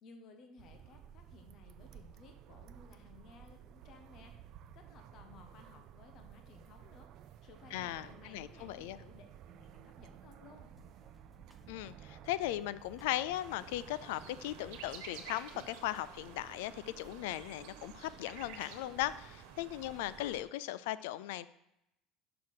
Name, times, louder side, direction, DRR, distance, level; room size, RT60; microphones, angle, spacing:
voice 1, 0.0-4.4 4.7-10.7, left 4 dB, 45° left, 5 dB, 1.0 m, -58 dB
sound 1, 0.6-20.4, right 10 dB, 50° right, 0.4 m, -55 dB
voice 2, 7.7-9.0 11.7-21.5, left 14 dB, 90° left, 17 dB, 0.3 m, -38 dB
sound 2, 10.8-12.3 13.0-15.3 15.6-16.6, left 1 dB, 5° left, 0.8 m, -62 dB
sound 3, 13.3-20.4, right 6 dB, 80° right, 1.2 m, -52 dB
5.9 x 5.8 x 6.5 m, 0.85 s
cardioid pair, 150°, 0 cm